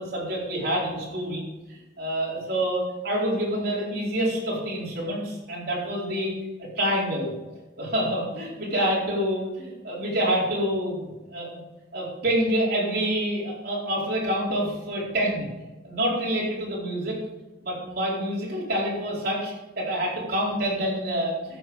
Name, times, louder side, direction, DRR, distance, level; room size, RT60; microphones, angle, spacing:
voice 1, 0.0-1.4 1.7-7.3 7.8-11.6 11.9-15.5 15.8-17.2 17.6-21.6, equal, 55° right, -5 dB, 4.3 m, -27 dB
14.0 x 7.6 x 4.9 m, 1.1 s
head